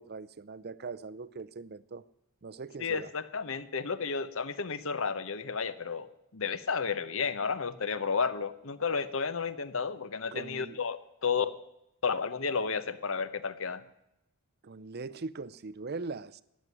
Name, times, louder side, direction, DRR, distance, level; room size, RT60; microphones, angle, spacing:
voice 1, 0.0-2.0 2.4-3.1 10.3-10.8 14.6-16.4, right 4 dB, 45° right, 0.6 m, -41 dB
voice 2, 2.8-11.5 12.0-13.8, left 5 dB, 60° left, 0.9 m, -32 dB
14.0 x 9.3 x 9.7 m
head